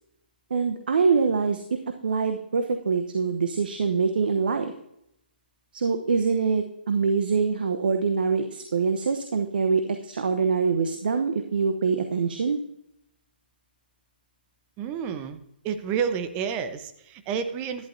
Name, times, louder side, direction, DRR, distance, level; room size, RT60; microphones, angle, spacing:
voice 1, 0.5-4.7 5.7-12.6, right 5 dB, 60° right, 6 dB, 1.0 m, -24 dB
voice 2, 14.8-15.4 15.6-17.9, right 7 dB, 25° right, 9 dB, 0.9 m, -30 dB
11.5 x 11.5 x 2.7 m, 0.78 s
figure-of-eight pair, 135°, 6 cm